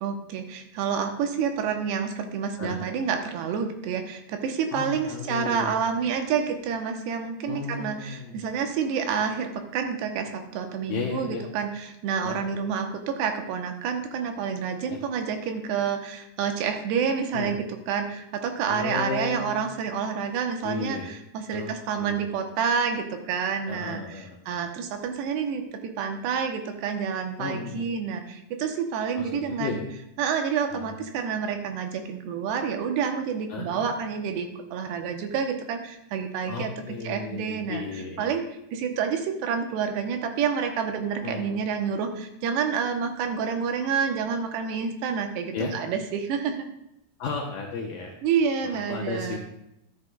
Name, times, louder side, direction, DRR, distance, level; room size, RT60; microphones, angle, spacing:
voice 1, 0.0-29.8 30.2-36.7 37.0-37.8 38.2-38.4 38.7-46.6 48.2-49.4, right 6 dB, 80° right, 4 dB, 2.9 m, -28 dB
voice 2, 4.7-5.8 7.5-8.4 10.9-11.4 12.2-12.4 14.9-15.0 17.3-17.5 18.7-19.5 20.6-21.1 21.5-22.3 23.7-24.4 27.4-27.9 29.2-29.9 30.7-31.0 33.5-33.9 36.5-38.3 41.2-41.6 45.5-45.7 47.2-48.1 48.6-49.4, left 5 dB, 80° left, -1 dB, 2.1 m, -34 dB
12.5 x 9.8 x 2.2 m, 0.81 s
omnidirectional pair, 5.0 m